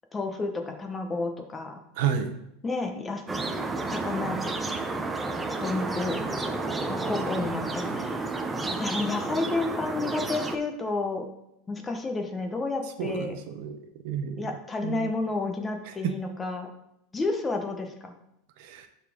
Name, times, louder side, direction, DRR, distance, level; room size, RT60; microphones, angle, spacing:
voice 1, 0.1-1.8 2.6-3.2 3.9-4.4 5.6-6.2 6.9-8.2 8.6-11.3 11.7-13.3 14.4-16.7 17.1-18.1, left 3 dB, 15° left, 5 dB, 1.0 m, -31 dB
voice 2, 2.0-2.3 13.0-13.8 14.0-14.5 14.8-15.1 16.0-16.1 18.6-18.9, right 8 dB, 65° right, 7 dB, 0.9 m, -30 dB
sound 1, 3.3-10.6, right 3 dB, 15° right, 0.7 m, -31 dB
11.5 x 4.2 x 3.6 m, 0.82 s
supercardioid pair, 130°, 0 cm